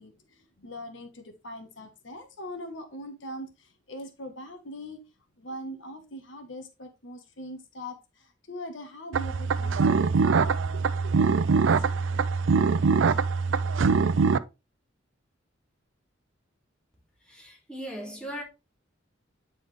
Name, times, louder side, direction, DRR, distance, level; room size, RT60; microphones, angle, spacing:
voice 1, 0.0-5.0 5.4-10.1 10.5-11.1, equal, 75° left, 1.2 m, -42 dB
sound 1, 9.1-14.4, right 5 dB, 80° right, 0.4 m, -23 dB
voice 2, 17.2-18.4, equal, 5° left, 2.4 m, -38 dB
9.3 x 4.0 x 3.3 m
head